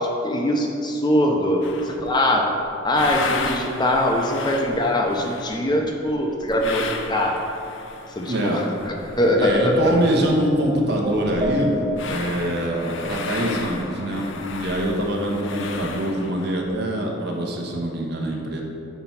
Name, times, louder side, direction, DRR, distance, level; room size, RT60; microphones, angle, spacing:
voice 1, 0.0-2.5 2.8-6.8 7.1-7.4 8.2-8.6 9.2-10.0, left 1 dB, 20° left, 1 dB, 0.5 m, -22 dB
sound 1, 1.6-2.2 2.6-10.4 10.7-10.8 11.0-16.7, left 4 dB, 70° left, 0.5 m, -34 dB
voice 2, 8.3-8.6 9.4-11.8 12.1-18.6, right 1 dB, 55° right, 0 dB, 1.0 m, -24 dB
sound 2, 10.2-12.3, right 1 dB, 25° right, 0.6 m, -30 dB
5.8 x 4.4 x 5.7 m, 2.7 s
head